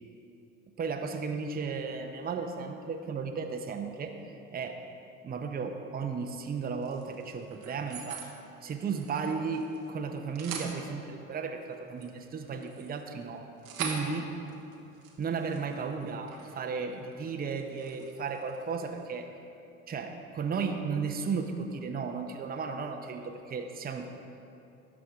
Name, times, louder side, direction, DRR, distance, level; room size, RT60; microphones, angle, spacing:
voice 1, 0.8-4.1 4.5-4.8 5.2-8.2 8.6-13.4 13.8-14.3 15.2-19.3 19.9-24.1, right 5 dB, 20° right, 4 dB, 0.8 m, -34 dB
sound 1, 6.8-8.3 8.7-9.9 10.2-10.7 11.6-16.6 16.9-17.2 17.5-19.0, right 5 dB, 80° right, 1.2 m, -43 dB
17.0 x 6.2 x 3.6 m, 2.8 s
figure-of-eight pair, 60°, 40 cm